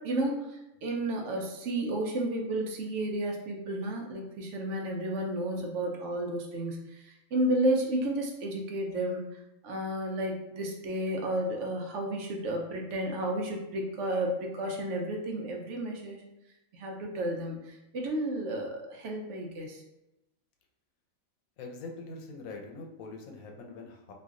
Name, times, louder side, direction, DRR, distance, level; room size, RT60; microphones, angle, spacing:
voice 1, 0.0-16.2 16.7-19.8, right 1 dB, 65° right, 1 dB, 0.9 m, -32 dB
voice 2, 21.6-24.1, left 3 dB, 80° left, 2 dB, 1.1 m, -43 dB
3.1 x 2.5 x 3.6 m, 0.92 s
omnidirectional pair, 1.4 m